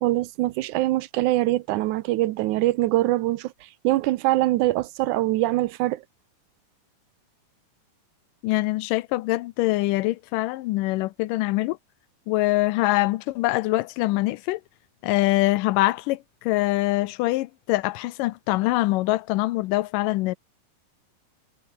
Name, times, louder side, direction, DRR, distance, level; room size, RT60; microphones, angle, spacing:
voice 1, 0.0-3.5 3.8-6.0, right 17 dB, 75° right, 2.0 m, -23 dB
voice 2, 8.4-11.8 12.3-14.6 15.0-20.4, left 18 dB, 80° left, 2.3 m, -24 dB
omnidirectional pair, 3.9 m